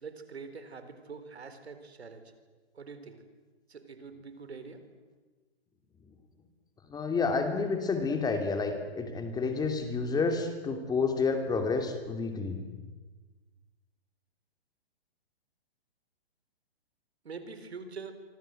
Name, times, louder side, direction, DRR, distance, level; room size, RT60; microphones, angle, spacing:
voice 1, 0.0-2.2 2.7-3.2 3.7-4.8 17.2-18.1, right 5 dB, 80° right, 9 dB, 4.3 m, -44 dB
voice 2, 6.9-12.6, left 4 dB, 10° left, 6 dB, 3.0 m, -30 dB
27.0 x 25.0 x 8.0 m, 1.3 s
hypercardioid pair, 135°, 32 cm